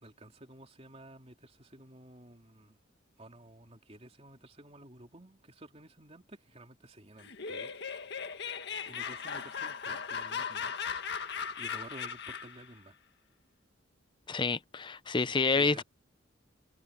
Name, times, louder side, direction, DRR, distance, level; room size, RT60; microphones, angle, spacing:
voice 1, 0.0-2.8 3.2-8.3 8.9-10.7 11.6-12.9 15.1-15.8, right 1 dB, 30° right, 3.2 m, -52 dB
Laughter, 7.2-12.7, left 6 dB, 55° left, 1.8 m, -38 dB
voice 2, 14.3-15.8, left 4 dB, 25° left, 0.6 m, -28 dB
head